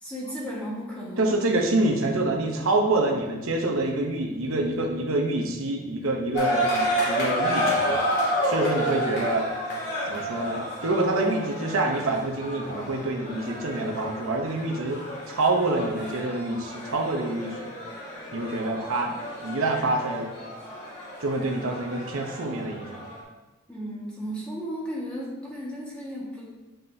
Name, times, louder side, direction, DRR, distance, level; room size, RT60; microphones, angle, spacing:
voice 1, 0.0-1.3 23.7-26.5, equal, 5° left, -6 dB, 1.5 m, -34 dB
voice 2, 1.2-8.0 8.4-9.5 10.1-15.0 15.3-17.7 18.3-19.2 19.4-20.3 21.2-23.0, right 2 dB, 75° right, 2 dB, 0.8 m, -26 dB
sound 1, 6.3-23.2, equal, 50° left, 2.1 m, -30 dB
7.2 x 5.5 x 2.7 m, 1.1 s
head